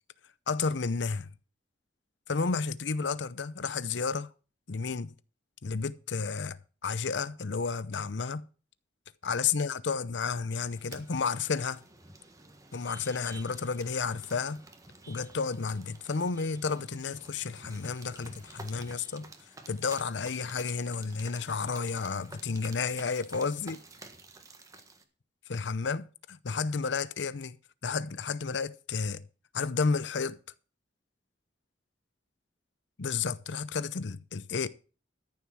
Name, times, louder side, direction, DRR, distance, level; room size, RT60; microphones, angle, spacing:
voice 1, 0.5-1.3 2.3-4.3 4.7-5.1 5.6-8.5 9.2-11.8 12.7-14.6 15.1-19.3 19.7-23.8 25.5-27.6 27.8-29.2 29.5-30.4 33.0-34.7, left 5 dB, 70° left, 0.7 m, -32 dB
sound 1, 10.6-25.0, right 3 dB, 20° right, 1.6 m, -51 dB
14.0 x 7.0 x 6.3 m
head